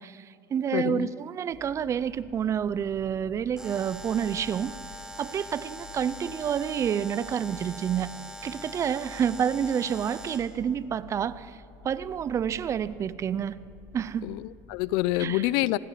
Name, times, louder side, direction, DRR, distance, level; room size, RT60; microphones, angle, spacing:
voice 1, 0.0-4.8 5.2-8.1 8.4-13.6 13.9-14.3 15.2-15.5, right 8 dB, 30° right, 18 dB, 0.6 m, -29 dB
voice 2, 0.7-1.1 14.2-15.8, left 17 dB, 70° left, 20 dB, 0.6 m, -27 dB
sound 1, 1.5-15.2, left 3 dB, 30° left, 3.0 m, -50 dB
Alarm, 3.6-10.6, right 1 dB, 5° right, 1.6 m, -43 dB
26.0 x 19.5 x 5.8 m, 2.6 s
supercardioid pair, 120°, 9 cm